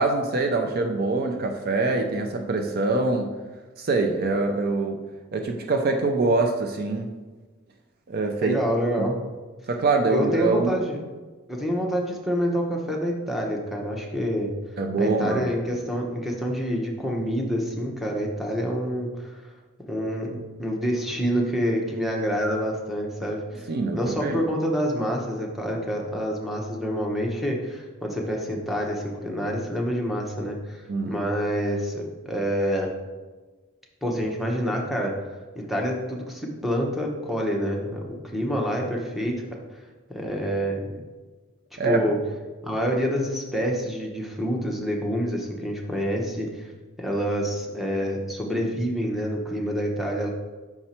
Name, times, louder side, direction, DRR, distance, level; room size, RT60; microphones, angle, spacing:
voice 1, 0.0-3.4 3.8-5.1 5.3-7.1 8.1-8.6 9.0-9.1 9.7-10.7 14.8-15.5 23.7-24.4 30.9-31.2 41.8-42.0, right 3 dB, 45° right, 4 dB, 0.5 m, -24 dB
voice 2, 8.4-9.2 10.1-11.0 11.5-14.5 15.0-19.5 19.9-32.9 34.0-35.1 35.5-39.4 40.1-41.0 41.8-42.2 42.6-46.7 47.0-50.3, equal, ahead, -1 dB, 0.8 m, -27 dB
5.9 x 4.4 x 4.3 m, 1.3 s
head